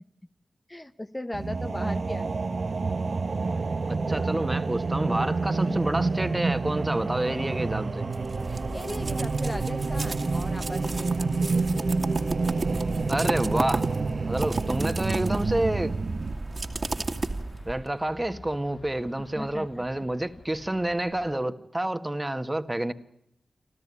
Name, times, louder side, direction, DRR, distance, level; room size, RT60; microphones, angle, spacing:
voice 1, 0.7-2.5 5.6-5.8 8.7-11.9 19.3-20.0, left 1 dB, 20° left, 8 dB, 1.0 m, -37 dB
sound 1, 1.3-16.3, right 4 dB, 60° right, 1.1 m, -28 dB
voice 2, 4.1-8.1 13.1-13.9 14.3-15.9 17.6-22.9, right 1 dB, 20° right, 9 dB, 1.7 m, -28 dB
sound 2, 7.6-21.4, left 3 dB, 70° left, 2.3 m, -49 dB
sound 3, 8.1-17.9, right 2 dB, 45° right, 2.3 m, -33 dB
29.5 x 13.0 x 9.9 m, 0.77 s
cardioid pair, 55°, 0 cm